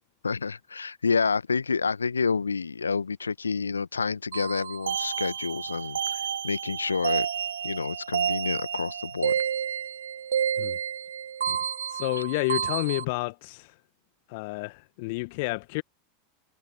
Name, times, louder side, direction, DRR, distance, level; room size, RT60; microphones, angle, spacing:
voice 1, 0.2-7.3 7.6-9.3 11.5-11.6, left 5 dB, 80° left, 1.4 m, -29 dB
sound 1, 4.3-13.0, right 8 dB, 70° right, 1.2 m, -30 dB
voice 2, 11.9-13.7 14.3-15.8, left 26 dB, 50° left, 1.2 m, -30 dB
figure-of-eight pair, 85°, 0 cm